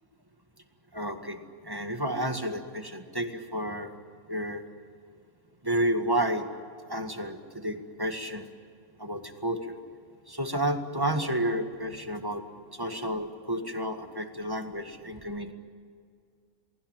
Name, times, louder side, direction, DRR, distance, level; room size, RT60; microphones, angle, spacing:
voice 1, 0.9-1.4 1.6-3.9 4.3-4.6 5.6-6.5 6.9-8.5 9.0-9.8 10.3-12.4 12.7-15.5, right 1 dB, 15° right, 5 dB, 1.9 m, -31 dB
29.0 x 20.0 x 9.0 m, 2.2 s
omnidirectional pair, 1.5 m